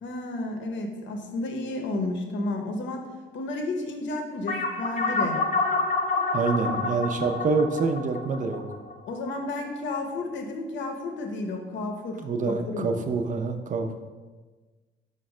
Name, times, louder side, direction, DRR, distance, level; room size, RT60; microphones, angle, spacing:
voice 1, 0.0-3.1 3.3-5.4 9.1-12.2 12.5-12.9, left 2 dB, 70° left, 3 dB, 0.7 m, -32 dB
sound 1, 4.5-9.3, left 3 dB, 35° left, 0.8 m, -28 dB
voice 2, 6.3-8.6 12.2-14.1, right 4 dB, 40° right, 6 dB, 0.5 m, -26 dB
5.1 x 2.1 x 4.8 m, 1.3 s
cardioid pair, 90°, 20 cm